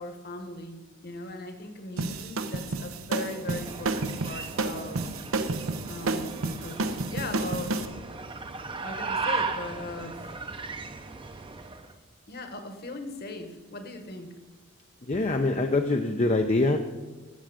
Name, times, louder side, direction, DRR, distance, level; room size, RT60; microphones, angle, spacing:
voice 1, 0.0-5.0 5.9-7.9 8.8-10.3 12.3-14.3, left 2 dB, 50° left, 7 dB, 1.3 m, -39 dB
sound 1, 2.0-7.9, right 3 dB, 85° right, 0.8 m, -30 dB
sound 2, 3.3-11.9, right 4 dB, 25° right, 0.7 m, -36 dB
voice 2, 15.1-16.8, left 2 dB, 30° left, 5 dB, 0.5 m, -24 dB
13.5 x 7.7 x 5.0 m, 1.3 s
head